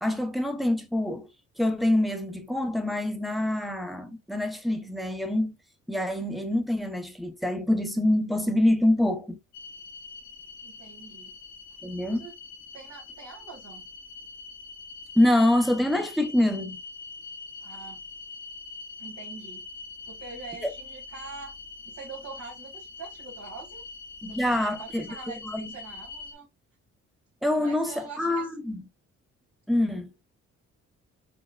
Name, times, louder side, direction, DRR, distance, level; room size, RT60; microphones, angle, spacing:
voice 1, 0.0-1.3 1.6-5.5 5.9-9.4 11.8-12.2 15.2-16.8 20.6-20.7 24.2-25.2 25.5-25.6 27.4-28.8 29.7-30.1, left 1 dB, ahead, 0.6 m, -25 dB
sound 1, 9.5-26.3, left 4 dB, 60° left, 0.6 m, -43 dB
voice 2, 10.6-11.3 12.1-12.3 12.7-13.8 17.6-18.0 19.0-19.6 20.0-21.5 21.8-23.8 24.2-26.5 27.6-28.5, right 4 dB, 60° right, 1.5 m, -44 dB
4.4 x 2.1 x 2.2 m
cardioid pair, 90°, 30 cm